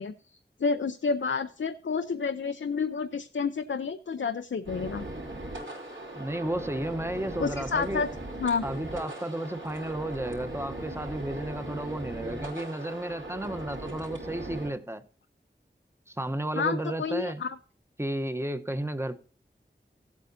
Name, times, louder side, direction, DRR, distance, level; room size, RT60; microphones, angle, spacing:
voice 1, 0.0-5.0 7.4-8.1 8.4-8.6 16.5-17.6, left 5 dB, 85° left, 0.5 m, -30 dB
sound 1, 4.7-14.7, right 1 dB, 80° right, 3.6 m, -39 dB
voice 2, 6.1-8.1 8.6-15.0 16.1-17.4 18.0-19.2, right 1 dB, 15° right, 0.9 m, -33 dB
16.0 x 8.4 x 2.7 m
wide cardioid pair, 55°, 19 cm